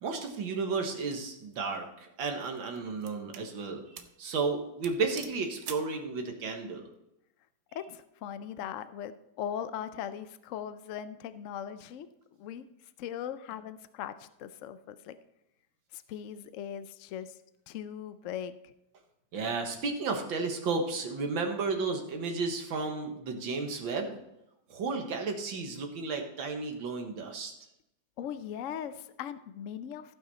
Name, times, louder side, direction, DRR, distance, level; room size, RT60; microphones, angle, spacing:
voice 1, 0.0-6.8 19.3-24.1 24.7-27.5, right 4 dB, 90° right, 3 dB, 2.2 m, -33 dB
sound 1, 1.3-1.6 2.3-3.5 4.0-4.2 4.5-4.6 4.8-6.0, right 8 dB, 70° right, 1.4 m, -46 dB
voice 2, 7.7-9.1 9.4-12.1 12.4-12.7 13.0-15.2 15.9-17.4 17.7-18.7 28.2-30.1, left 9 dB, 80° left, 12 dB, 0.6 m, -39 dB
16.0 x 5.9 x 4.2 m, 0.84 s
omnidirectional pair, 2.1 m